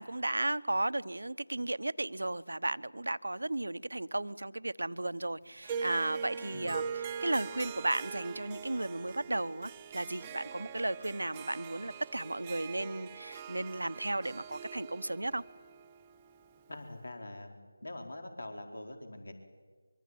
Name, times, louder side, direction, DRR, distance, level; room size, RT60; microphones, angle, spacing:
voice 1, 0.0-15.4, right 2 dB, 70° right, 15 dB, 1.0 m, -34 dB
Harp, 5.6-16.9, right 7 dB, 15° right, 0.8 m, -43 dB
voice 2, 16.7-19.3, left 1 dB, 65° left, 5 dB, 4.6 m, -44 dB
24.5 x 24.5 x 9.4 m, 1.5 s
figure-of-eight pair, 165°, 0 cm